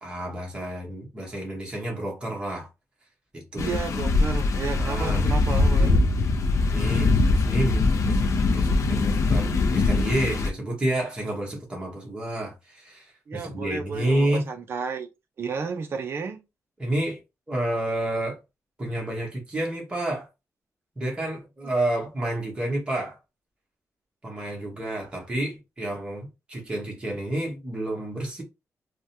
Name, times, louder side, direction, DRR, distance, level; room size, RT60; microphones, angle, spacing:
voice 1, 0.0-2.7 3.3-3.7 4.7-5.2 6.7-8.2 8.5-14.5 16.8-17.2 17.5-18.4 18.8-20.3 21.0-23.2 24.2-28.4, right 1 dB, 15° right, 1.1 m, -30 dB
voice 2, 3.5-6.0 13.3-15.1 15.4-16.4, right 5 dB, 40° right, 0.4 m, -32 dB
sound 1, 3.6-10.5, left 3 dB, 65° left, 0.4 m, -22 dB
3.4 x 2.1 x 2.7 m
wide cardioid pair, 170°, 6 cm